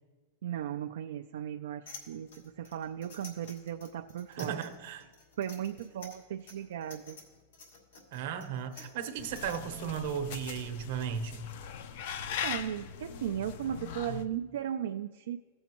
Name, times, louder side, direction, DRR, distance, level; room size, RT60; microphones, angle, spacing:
voice 1, 0.4-4.6 5.4-7.2 12.4-15.4, right 10 dB, 80° right, 5 dB, 0.3 m, -36 dB
sound 1, 1.9-9.6, left 3 dB, 85° left, 2.5 m, -51 dB
voice 2, 4.3-5.0 8.1-11.5, right 8 dB, 60° right, 6 dB, 0.9 m, -35 dB
sound 2, 9.2-14.2, left 7 dB, 60° left, 0.5 m, -40 dB
15.5 x 7.1 x 3.0 m, 1.3 s
supercardioid pair, 150°, 0 cm